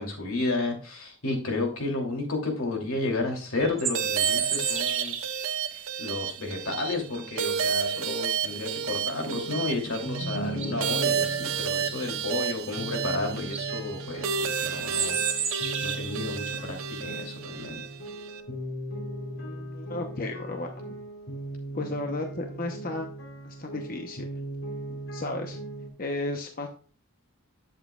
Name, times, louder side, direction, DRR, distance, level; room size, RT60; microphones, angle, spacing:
voice 1, 0.0-5.1 5.7-15.2 15.8-17.8, left 2 dB, 80° left, 1 dB, 3.0 m, -32 dB
sound 1, 3.6-5.4 9.9-10.0 10.5-10.9 12.9-13.0 13.4-13.6 14.8-16.2, right 7 dB, 30° right, 1.4 m, -31 dB
sound 2, 3.9-18.4, right 7 dB, 75° right, 0.9 m, -31 dB
sound 3, 9.2-25.9, right 2 dB, 65° left, 3.5 m, -38 dB
voice 2, 19.4-20.7 21.7-23.1 23.4-24.3 25.1-25.6 26.0-26.7, left 2 dB, 40° left, 3 dB, 0.9 m, -33 dB
11.5 x 7.4 x 2.4 m, 0.40 s
head